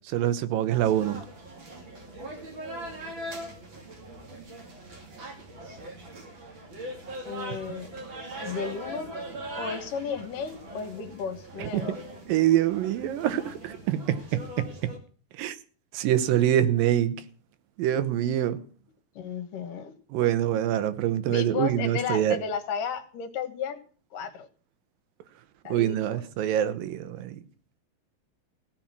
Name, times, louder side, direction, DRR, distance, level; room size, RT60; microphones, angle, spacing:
voice 1, 0.1-1.2 11.6-11.8 12.3-14.7 15.4-15.6 15.9-17.2 17.8-18.6 20.1-22.4 25.7-27.3, right 11 dB, 90° right, 2.7 m, -25 dB
sound 1, 0.7-15.0, right 1 dB, 40° right, 2.8 m, -41 dB
voice 2, 7.3-8.0 8.4-9.1 9.6-12.0 19.2-19.9 21.3-23.8 24.1-24.5 25.6-26.2, left 6 dB, 75° left, 2.9 m, -34 dB
16.5 x 5.9 x 9.5 m
omnidirectional pair, 4.0 m